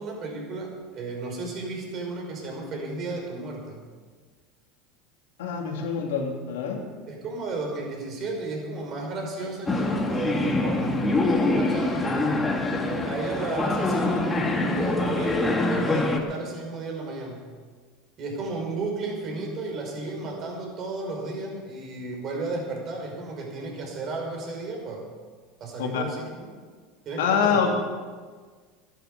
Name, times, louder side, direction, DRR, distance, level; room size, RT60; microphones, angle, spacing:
voice 1, 0.0-3.8 7.1-12.4 12.8-17.5 18.2-25.1 25.6-26.5 27.1-27.7, right 3 dB, 45° right, 0 dB, 5.5 m, -33 dB
voice 2, 5.4-6.8 25.8-26.0 27.2-27.7, left 6 dB, 80° left, 1 dB, 2.8 m, -25 dB
sound 1, 9.7-16.2, left 2 dB, 15° left, 2.2 m, -25 dB
14.5 x 11.0 x 6.9 m, 1.5 s
hypercardioid pair, 90°, 0 cm